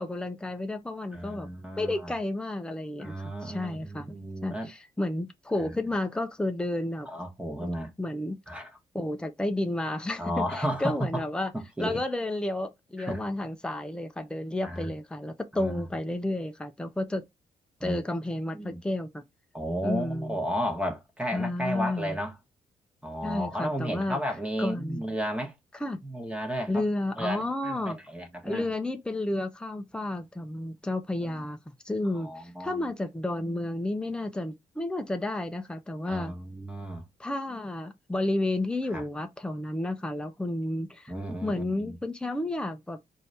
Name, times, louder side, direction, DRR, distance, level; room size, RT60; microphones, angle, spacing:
voice 1, 0.0-1.5 1.8-3.2 3.4-4.2 4.4-7.1 7.6-7.7 8.0-8.4 8.9-11.5 11.8-17.3 17.8-19.2 19.8-20.4 21.3-22.2 23.2-24.2 24.6-25.0 25.7-26.0 26.7-28.0 28.4-31.6 31.8-36.3 37.2-41.1 41.4-43.0, left 1 dB, 5° left, 0.7 m, -31 dB
voice 2, 1.1-2.1 3.0-4.7 7.1-7.9 8.5-8.7 10.2-11.2 11.5-12.0 13.0-13.2 14.6-14.9 15.5-15.8 17.8-18.0 18.5-18.8 19.5-22.3 23.0-25.5 26.0-26.8 27.2-28.7 31.2-31.4 32.1-32.9 36.1-37.0 38.9-39.0 41.1-41.9, equal, 10° right, 1.3 m, -33 dB
4.3 x 2.7 x 3.3 m
cardioid pair, 80°, 13 cm